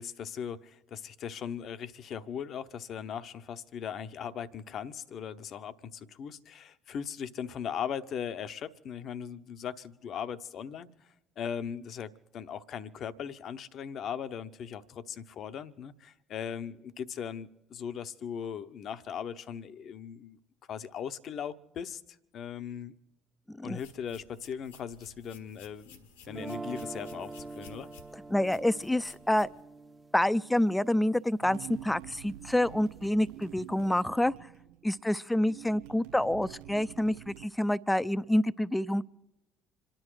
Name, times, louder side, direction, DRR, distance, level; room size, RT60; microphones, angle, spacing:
voice 1, 0.0-10.9 11.4-20.4 20.7-22.0 22.3-22.9 23.6-27.9, left 8 dB, 50° left, 0.9 m, -39 dB
voice 2, 23.5-23.8 28.3-29.5 30.1-34.3 34.8-39.0, left 1 dB, 10° left, 0.6 m, -27 dB
sound 1, 23.7-29.6, left 5 dB, 80° left, 1.5 m, -56 dB
sound 2, 26.3-32.4, right 2 dB, 20° right, 0.9 m, -45 dB
sound 3, 31.4-37.5, right 13 dB, 70° right, 0.4 m, -47 dB
27.0 x 10.5 x 4.8 m
figure-of-eight pair, 55°, 0 cm